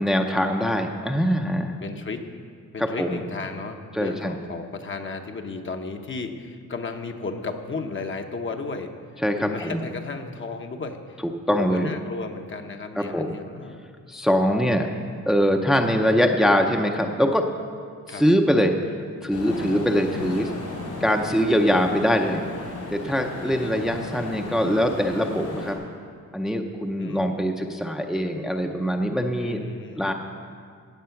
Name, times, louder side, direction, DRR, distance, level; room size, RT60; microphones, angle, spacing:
voice 1, 0.0-1.8 2.8-3.2 3.9-4.3 9.2-9.8 11.5-11.9 13.0-13.3 14.1-14.9 15.3-17.4 18.1-18.7 19.2-20.5 21.0-22.4 22.9-25.8 26.3-29.6 30.0-30.1, equal, ahead, 3 dB, 0.6 m, -23 dB
voice 2, 1.8-2.3 2.7-8.9 9.4-13.9 18.1-18.2 23.4-23.7 27.0-27.2 29.4-30.1, left 4 dB, 40° left, 5 dB, 1.0 m, -34 dB
sound 1, 19.3-25.7, left 2 dB, 75° left, 3.8 m, -35 dB
17.0 x 7.5 x 5.9 m, 2.1 s
cardioid pair, 115°, 31 cm